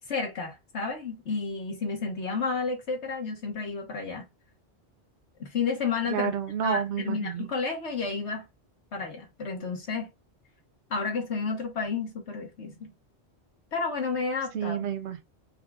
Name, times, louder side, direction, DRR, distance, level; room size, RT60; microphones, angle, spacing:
voice 1, 0.1-4.2 5.4-6.3 6.6-8.4 8.9-10.1 10.9-12.9 13.7-14.8, left 4 dB, 90° left, 1.6 m, -31 dB
voice 2, 6.1-7.5 14.5-15.2, right 8 dB, 85° right, 0.9 m, -30 dB
4.6 x 3.5 x 2.4 m
omnidirectional pair, 1.1 m